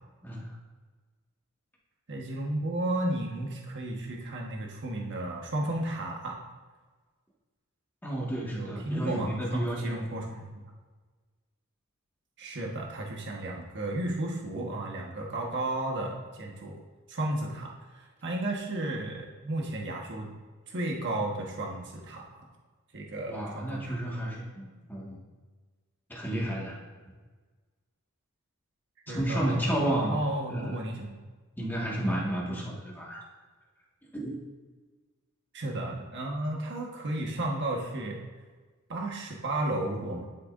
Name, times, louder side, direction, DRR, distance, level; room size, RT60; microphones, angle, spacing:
voice 1, 2.1-6.4 8.5-10.6 12.4-16.8 17.1-20.3 20.7-22.4 22.9-24.0 29.1-31.1 32.5-32.6 35.5-38.2 38.9-40.2, right 1 dB, 55° right, -1 dB, 1.4 m, -33 dB
voice 2, 8.0-9.9 23.3-25.2 26.1-26.8 29.1-30.2 30.5-30.8 31.6-33.2 34.1-34.3, right 1 dB, 10° left, -4 dB, 1.7 m, -31 dB
12.0 x 6.6 x 2.6 m, 1.4 s
head